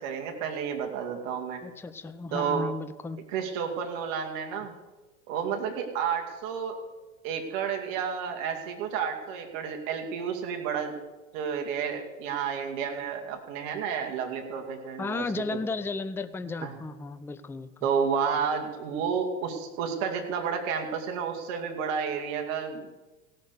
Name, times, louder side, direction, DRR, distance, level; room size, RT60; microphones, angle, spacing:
voice 1, 0.0-1.6 2.3-2.6 3.3-4.7 5.3-6.8 7.2-11.0 11.3-15.6 16.6-16.7 17.8-22.9, right 7 dB, 60° right, 3 dB, 2.5 m, -31 dB
voice 2, 1.6-3.2 15.0-17.9, left 3 dB, 5° left, 12 dB, 0.5 m, -34 dB
16.5 x 6.7 x 6.7 m, 1.2 s
hypercardioid pair, 95°, 40 cm